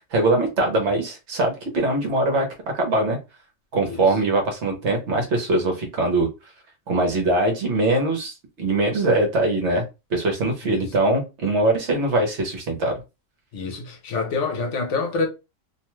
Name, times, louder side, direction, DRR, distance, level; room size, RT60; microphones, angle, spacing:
voice 1, 0.1-2.5 2.7-3.2 3.7-6.3 6.9-9.8 10.1-12.9, right 2 dB, 60° right, 1.1 m, -22 dB
voice 2, 13.5-15.3, left 4 dB, 65° left, 0.9 m, -26 dB
2.6 x 2.2 x 3.0 m
omnidirectional pair, 1.4 m